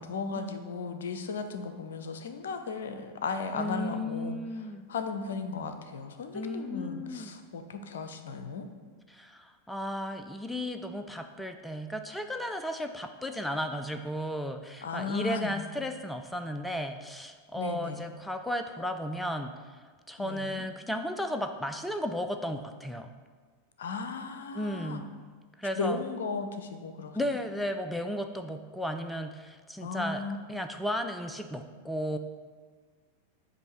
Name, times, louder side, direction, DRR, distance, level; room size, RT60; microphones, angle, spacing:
voice 1, 0.0-8.7 14.8-15.7 17.5-18.0 20.2-20.7 23.8-25.0 25.8-27.2 29.8-30.4, left 4 dB, 60° left, 8 dB, 0.5 m, -36 dB
voice 2, 3.5-4.9 6.3-7.4 9.1-19.5 20.1-23.1 24.5-25.1 25.6-26.0 27.1-30.2 30.5-32.2, equal, 5° left, 7 dB, 0.3 m, -34 dB
7.9 x 2.7 x 5.6 m, 1.5 s
figure-of-eight pair, 90°, 0 cm